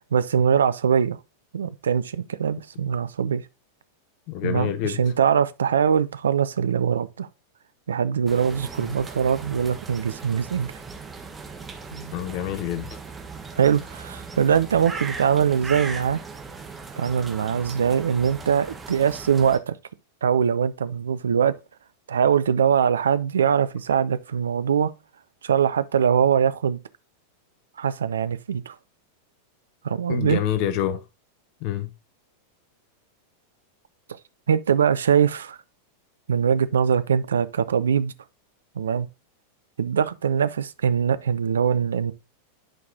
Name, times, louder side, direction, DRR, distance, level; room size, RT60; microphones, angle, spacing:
voice 1, 0.1-1.2 1.5-3.4 4.4-7.3 7.9-10.7 11.9-12.1 13.6-16.2 17.0-19.8 20.2-21.5 22.1-24.9 25.4-26.8 27.8-28.7 29.8-30.4 34.5-35.6 36.3-38.1 38.8-39.1 39.8-42.1, right 7 dB, 65° right, 0.5 m, -22 dB
voice 2, 4.3-5.0 12.1-12.9 30.1-31.0 31.6-31.9, left 11 dB, 45° left, 0.6 m, -27 dB
sound 1, 8.3-19.6, right 4 dB, 15° right, 1.2 m, -38 dB
11.5 x 4.7 x 2.7 m
figure-of-eight pair, 90°, 0 cm